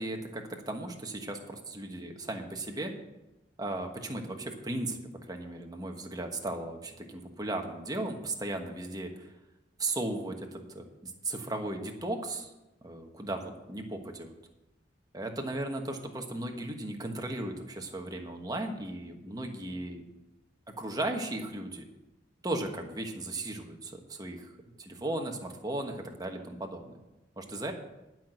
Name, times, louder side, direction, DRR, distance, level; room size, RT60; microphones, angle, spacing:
voice 1, 0.0-2.9 3.6-5.0 5.3-9.3 9.8-12.5 12.8-14.3 15.1-20.0 20.8-21.8 22.4-24.5 24.8-27.0 27.4-27.7, right 2 dB, 20° right, 3 dB, 1.3 m, -36 dB
11.5 x 6.0 x 7.8 m, 0.98 s
head